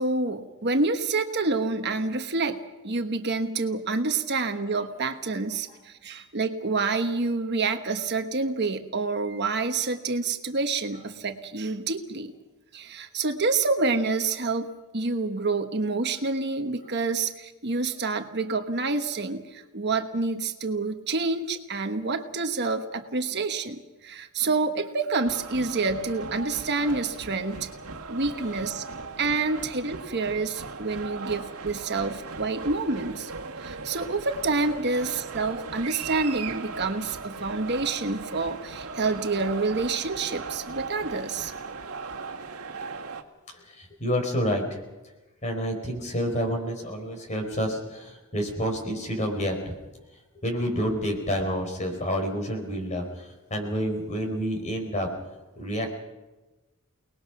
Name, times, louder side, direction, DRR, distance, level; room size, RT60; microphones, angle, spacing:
voice 1, 0.0-2.6 2.8-12.3 12.7-27.7 28.1-28.8 29.2-33.3 33.6-41.5, right 3 dB, 50° right, 6 dB, 1.3 m, -28 dB
sound 1, 25.2-43.2, right 4 dB, 75° right, 1.8 m, -38 dB
voice 2, 43.5-44.8 45.4-49.6 50.4-55.1 55.6-56.0, equal, 30° left, 4 dB, 4.5 m, -29 dB
29.5 x 20.0 x 5.9 m, 1.1 s
head